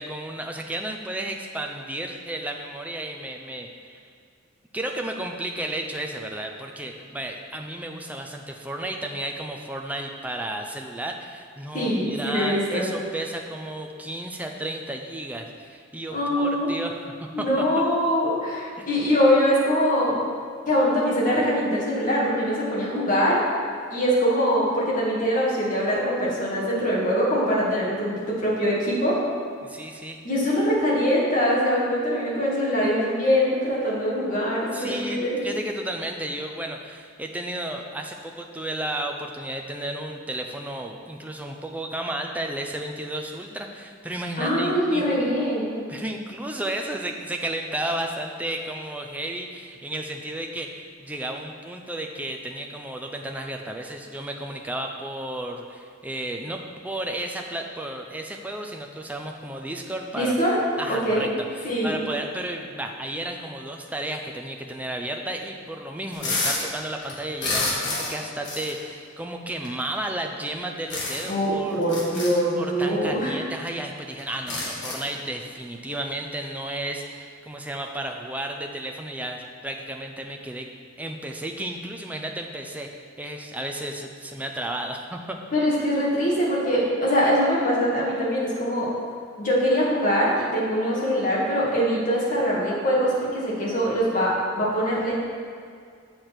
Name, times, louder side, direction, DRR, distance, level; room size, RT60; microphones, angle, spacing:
voice 1, 0.0-4.1 4.7-17.9 18.8-18.9 26.8-26.9 29.6-30.3 34.7-45.0 45.9-60.3 60.8-71.8 72.6-80.7 81.0-82.9 83.2-85.4, right 1 dB, 5° right, 2 dB, 0.5 m, -33 dB
voice 2, 11.7-12.9 16.1-16.7 17.3-20.2 20.7-23.4 23.9-29.2 30.2-35.4 44.4-45.7 60.1-60.6 61.0-61.2 61.6-62.0 71.3-71.5 71.8-73.4 85.5-88.9 89.4-95.1, equal, 40° left, -6 dB, 2.0 m, -23 dB
sound 1, 66.1-66.7 67.0-68.2 68.4-68.7 69.6-69.7 70.9-71.4 71.8-72.3 73.3-73.4 73.6-73.7 74.2-75.1, left 2 dB, 55° left, 1.7 m, -28 dB
7.7 x 6.7 x 4.4 m, 2.2 s
head